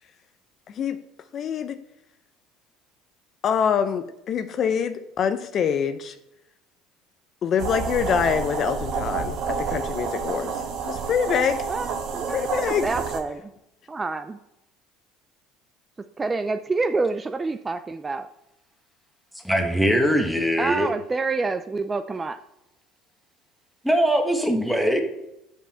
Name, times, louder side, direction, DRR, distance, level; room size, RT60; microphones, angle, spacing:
voice 1, 0.7-1.0 1.3-1.8 3.4-6.2 7.4-10.5 10.8-11.7 12.3-12.9, left 7 dB, 50° left, 10 dB, 0.5 m, -25 dB
sound 1, 7.6-13.2, right 5 dB, 60° right, 1.3 m, -29 dB
voice 2, 11.7-13.5 13.9-14.4 16.2-18.3 20.6-22.4, right 3 dB, 20° right, 9 dB, 0.4 m, -27 dB
voice 3, 19.4-20.9 23.8-25.0, equal, ahead, 3 dB, 1.5 m, -21 dB
7.4 x 5.5 x 4.4 m, 0.86 s
supercardioid pair, 85°, 0 cm